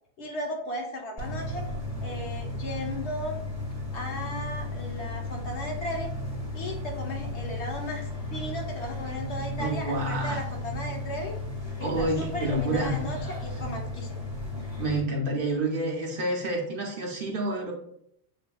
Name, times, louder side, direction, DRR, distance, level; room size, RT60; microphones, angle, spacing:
voice 1, 0.2-1.6 2.0-3.4 3.9-6.1 6.5-11.4 11.8-14.2 14.5-14.6, left 1 dB, 80° left, 1 dB, 1.2 m, -36 dB
sound 1, 1.2-15.0, left 1 dB, 25° left, 1.0 m, -34 dB
voice 2, 9.6-10.4 11.8-12.9 14.8-17.7, right 1 dB, 55° right, 0 dB, 0.9 m, -28 dB
7.0 x 2.6 x 2.3 m, 0.71 s
omnidirectional pair, 1.2 m